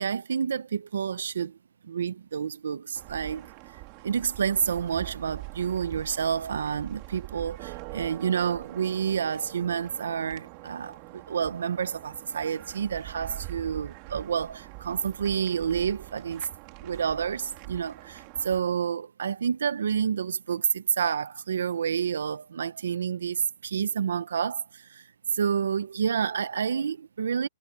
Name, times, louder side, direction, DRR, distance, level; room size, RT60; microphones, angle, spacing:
voice 1, 0.0-1.6 1.8-3.8 4.0-16.5 16.8-27.5, right 7 dB, 85° right, 0.8 m, -29 dB
sound 1, 3.0-18.6, right 25 dB, 35° right, 2.3 m, -44 dB
hypercardioid pair, 155°, 0 cm